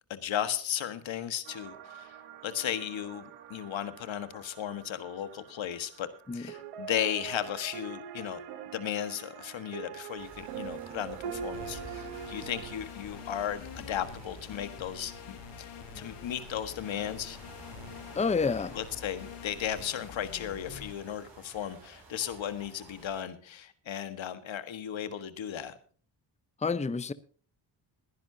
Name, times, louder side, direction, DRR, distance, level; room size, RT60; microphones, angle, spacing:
voice 1, 0.1-2.1 2.4-8.4 8.7-15.7 15.9-17.4 18.7-25.8, left 10 dB, 65° left, 1.6 m, -35 dB
sound 1, 1.4-12.8, right 8 dB, 90° right, 1.4 m, -44 dB
sound 2, 10.2-23.2, right 3 dB, 55° right, 5.9 m, -52 dB
sound 3, 11.5-20.9, left 8 dB, 90° left, 1.4 m, -46 dB
voice 2, 18.1-18.7 26.6-27.1, left 4 dB, 15° left, 0.7 m, -28 dB
22.0 x 10.5 x 2.8 m
supercardioid pair, 50°, 49 cm